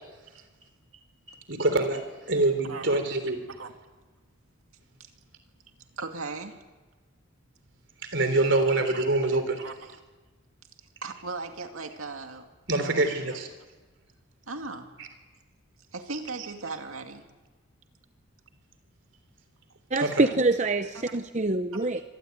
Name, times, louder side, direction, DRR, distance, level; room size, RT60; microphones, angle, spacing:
voice 1, 1.5-3.4 8.0-9.7 12.7-13.5 19.9-20.3, right 2 dB, 60° right, 8 dB, 3.5 m, -25 dB
voice 2, 5.9-6.6 8.5-9.0 9.3-9.8 11.0-13.4 14.5-14.9 15.9-17.2 21.1-21.2 21.7-21.9, right 3 dB, 85° right, 5 dB, 2.4 m, -38 dB
voice 3, 19.9-22.0, right 2 dB, 35° right, 8 dB, 0.8 m, -25 dB
25.5 x 19.0 x 9.4 m, 1.2 s
head